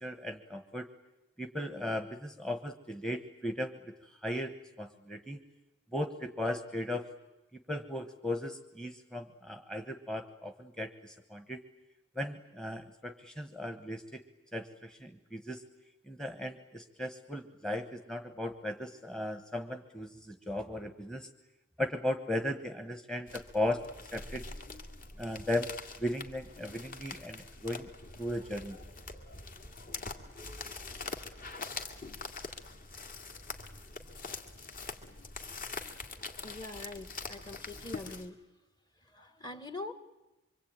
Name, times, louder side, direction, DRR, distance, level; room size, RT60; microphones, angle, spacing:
voice 1, 0.0-0.9 1.4-3.8 4.1-5.4 5.9-7.1 7.7-11.6 12.1-14.2 14.5-15.6 16.1-21.3 21.8-24.4 25.2-25.7 26.0-27.9 28.2-28.8, left 1 dB, 5° left, 7 dB, 1.3 m, -37 dB
sound 1, 23.3-38.3, left 4 dB, 40° left, 2.3 m, -44 dB
voice 2, 36.4-38.4 39.1-39.9, left 2 dB, 20° left, 10 dB, 1.6 m, -43 dB
25.5 x 25.0 x 9.0 m, 1.0 s
head